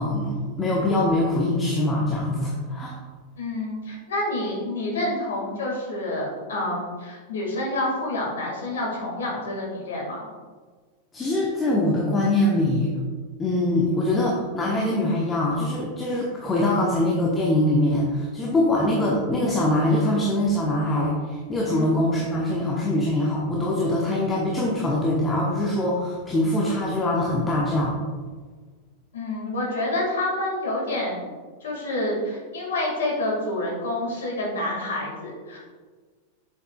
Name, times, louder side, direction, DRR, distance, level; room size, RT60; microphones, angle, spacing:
voice 1, 0.0-3.0 11.1-12.9 13.4-28.0, left 1 dB, 15° left, -4 dB, 1.0 m, -23 dB
voice 2, 3.4-10.3 21.7-21.9 29.1-31.3 31.6-35.6, left 1 dB, 65° left, -2 dB, 2.0 m, -28 dB
7.7 x 6.5 x 2.3 m, 1.5 s
figure-of-eight pair, 90°, 0 cm